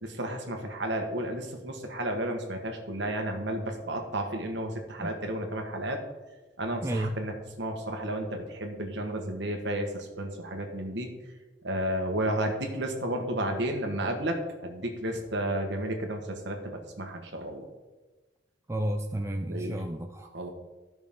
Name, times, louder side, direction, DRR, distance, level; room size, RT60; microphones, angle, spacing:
voice 1, 0.0-6.0 6.6-11.1 11.6-17.7 19.5-19.7 20.3-20.5, right 1 dB, 60° right, 3 dB, 1.4 m, -32 dB
voice 2, 6.8-7.1 18.7-20.3, right 1 dB, 15° right, 3 dB, 0.4 m, -32 dB
13.5 x 6.1 x 3.7 m, 1.2 s
head